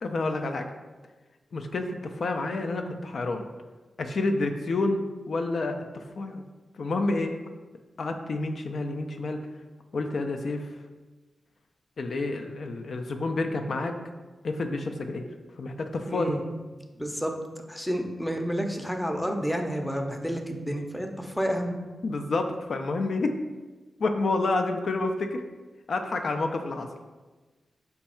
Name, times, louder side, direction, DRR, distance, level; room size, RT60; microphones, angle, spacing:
voice 1, 0.0-0.7 1.5-3.4 4.0-6.4 6.8-7.3 8.0-9.4 9.9-10.7 12.0-14.0 14.4-15.2 15.6-16.3 22.0-23.3 24.0-25.4 25.9-26.9, left 2 dB, 65° left, 5 dB, 0.3 m, -29 dB
voice 2, 16.1-16.4 17.0-17.3 17.7-21.7, equal, 5° left, 3 dB, 0.6 m, -30 dB
5.1 x 2.3 x 4.2 m, 1.3 s
cardioid pair, 65°, 0 cm